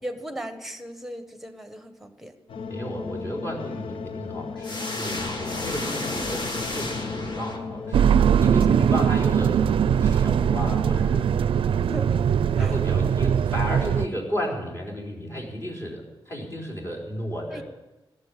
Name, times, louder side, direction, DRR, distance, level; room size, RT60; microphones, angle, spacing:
voice 1, 0.0-2.3 11.8-12.2 12.5-12.8 17.5-17.6, equal, 5° right, 9 dB, 1.3 m, -37 dB
sound 1, 2.5-8.2, left 5 dB, 80° left, 0.8 m, -36 dB
voice 2, 2.7-8.1 8.4-11.6 12.6-17.6, equal, 30° left, -2 dB, 4.1 m, -33 dB
sound 2, 4.6-8.0, left 2 dB, 55° left, 2.1 m, -32 dB
sound 3, 7.9-14.1, right 8 dB, 80° right, 0.4 m, -21 dB
17.5 x 7.4 x 9.7 m, 1.0 s
wide cardioid pair, 145°, 9 cm